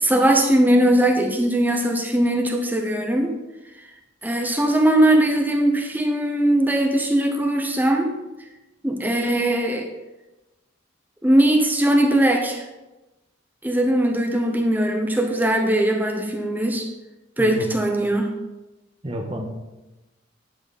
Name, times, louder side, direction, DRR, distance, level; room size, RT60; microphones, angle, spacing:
voice 1, 0.0-3.3 4.2-8.1 8.8-9.9 11.2-12.6 13.6-16.9 17.4-18.3, right 1 dB, 10° right, 3 dB, 0.9 m, -20 dB
voice 2, 19.0-19.5, equal, 25° right, 2 dB, 1.3 m, -30 dB
10.5 x 7.8 x 4.2 m, 1.0 s
head